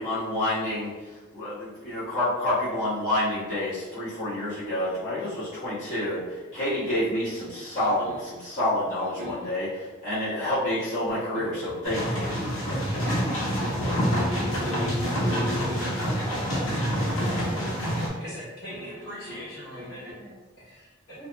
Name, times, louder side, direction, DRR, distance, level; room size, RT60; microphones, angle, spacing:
voice 1, 0.0-12.4, left 1 dB, 40° left, -13 dB, 1.4 m, -28 dB
sound 1, 7.3-8.4 9.0-9.6 10.6-11.9 13.5-16.2 17.0-17.6 18.7-20.1, left 1 dB, 85° right, 0.6 m, -37 dB
sound 2, 11.8-18.1, equal, 80° left, 0.8 m, -27 dB
voice 2, 13.0-14.6 14.9-17.8 19.8-20.4 21.2-21.3, equal, 15° right, -11 dB, 0.4 m, -40 dB
voice 3, 18.2-20.1 20.6-21.3, equal, 55° left, -10 dB, 1.3 m, -41 dB
2.7 x 2.6 x 2.2 m, 1.3 s
head